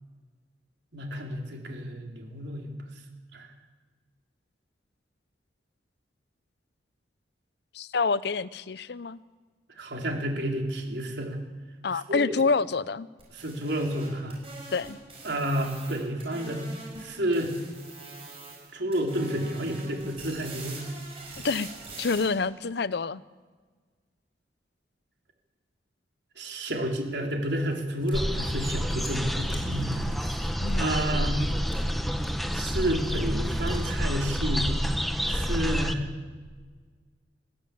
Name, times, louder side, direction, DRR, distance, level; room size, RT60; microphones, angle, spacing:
voice 1, 0.9-2.7 3.3-3.5 9.8-11.4 12.1-12.3 13.3-14.4 15.2-16.6 17.0-17.5 18.7-20.8 26.4-31.4 32.5-34.7 35.3-36.1, right 1 dB, 65° right, 1 dB, 3.9 m, -30 dB
voice 2, 7.7-9.2 11.8-13.1 14.7-15.0 21.4-21.7 22.0-23.2 30.6-31.0, left 4 dB, 60° left, 18 dB, 0.6 m, -27 dB
sound 1, 13.2-17.1 17.3-18.7 18.9-22.2, right 3 dB, 30° right, 7.7 m, -43 dB
sound 2, 27.1-34.4, left 2 dB, 30° left, 6.0 m, -50 dB
sound 3, 28.1-35.9, equal, ahead, 1.1 m, -28 dB
21.0 x 15.5 x 8.5 m, 1.5 s
head